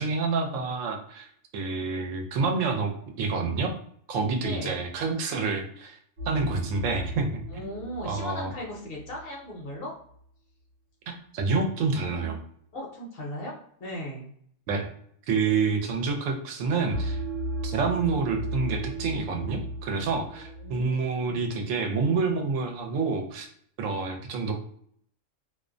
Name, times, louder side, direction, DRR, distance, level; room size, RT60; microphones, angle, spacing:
voice 1, 0.0-2.9 3.2-3.7 4.1-6.0 6.3-7.7 8.1-8.5 11.3-12.4 14.7-14.9 15.3-17.2 17.6-23.5 23.8-24.5, right 4 dB, 80° right, 3 dB, 0.9 m, -28 dB
voice 2, 4.4-4.9 7.5-9.9 12.7-14.3 20.3-21.5, equal, 55° left, -2 dB, 0.8 m, -38 dB
sound 1, 6.2-9.3 16.9-20.9, right 1 dB, 55° right, 1.0 m, -35 dB
2.4 x 2.0 x 2.5 m, 0.64 s
omnidirectional pair, 1.3 m